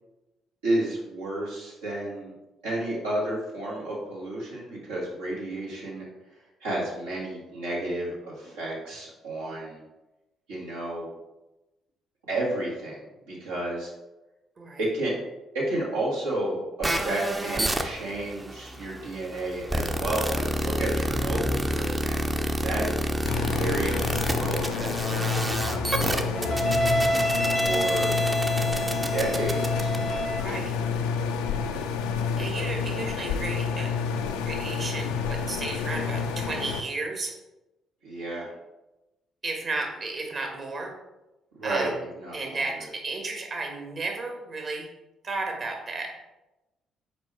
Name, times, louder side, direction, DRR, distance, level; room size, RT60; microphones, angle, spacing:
voice 1, 0.6-2.3 2.6-6.1 6.6-9.8 10.5-11.1 12.3-13.0 13.3-13.9 14.8-15.1 15.5-22.9 23.6-26.7 27.5-28.2 29.1-30.0 38.0-38.5 41.5-42.7, right 1 dB, 75° right, -6 dB, 1.7 m, -31 dB
sound 1, 16.8-30.4, right 1 dB, 20° right, 0.7 m, -28 dB
sound 2, 20.9-22.1 23.4-24.8 25.4-27.9, left 2 dB, 20° left, 0.6 m, -37 dB
Refridgerator electric machine engine noise, 23.3-36.8, left 6 dB, 70° left, 0.4 m, -29 dB
voice 2, 30.4-30.7 32.4-33.9 34.4-37.3 39.4-40.9 41.6-41.9 42.3-44.9 45.2-46.1, right 3 dB, 40° right, 1 dB, 1.5 m, -33 dB
5.2 x 4.6 x 4.4 m, 1.0 s
figure-of-eight pair, 45°, 0 cm